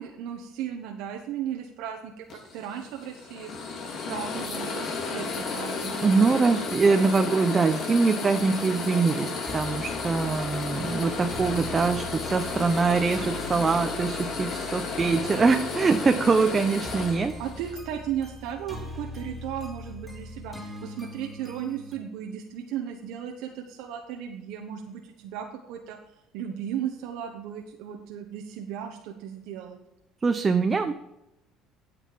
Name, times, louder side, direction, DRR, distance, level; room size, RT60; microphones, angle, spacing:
voice 1, 0.0-3.5 4.1-6.1 17.4-26.0 26.3-29.8, right 9 dB, 80° right, 3 dB, 1.1 m, -35 dB
sound 1, 2.3-17.8, left 4 dB, 55° left, 2.2 m, -33 dB
sound 2, 4.8-21.9, left 1 dB, 10° left, 3.0 m, -42 dB
voice 2, 6.0-17.4 30.2-30.9, right 4 dB, 25° right, 6 dB, 0.7 m, -23 dB
9.1 x 8.0 x 4.7 m, 0.89 s
supercardioid pair, 95°, 0 cm